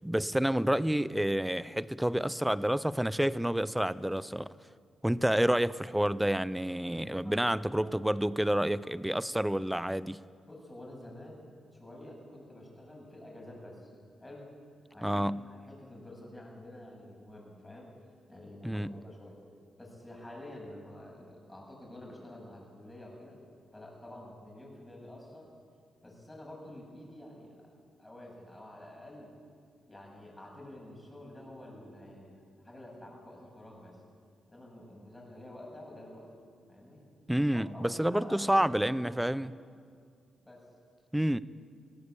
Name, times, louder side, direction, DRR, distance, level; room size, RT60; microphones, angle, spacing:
voice 1, 0.0-4.5 5.0-10.2 15.0-15.5 18.6-19.0 37.3-39.5 41.1-41.4, right 1 dB, 5° right, 0.6 m, -29 dB
voice 2, 6.8-7.5 7.8-7.9 10.5-11.4 11.7-13.9 14.2-14.4 14.9-17.9 18.3-19.4 19.8-23.4 23.7-25.5 26.0-27.6 28.0-29.3 29.9-34.0 34.5-36.3 36.7-37.0 37.5-38.9 39.1-39.4 40.4-40.6, left 1 dB, 15° left, 7.8 m, -49 dB
21.0 x 16.5 x 8.5 m
cardioid pair, 85°, 0 cm